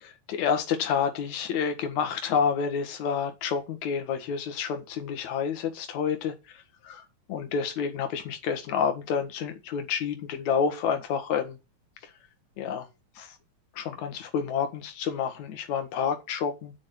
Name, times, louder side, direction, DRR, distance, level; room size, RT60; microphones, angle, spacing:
voice 1, 0.0-6.3 6.8-7.0 7.3-11.6 12.6-12.9 13.2-13.3 13.8-16.7, left 7 dB, 60° left, 2.8 m, -29 dB
9.2 x 6.0 x 8.3 m
omnidirectional pair, 4.1 m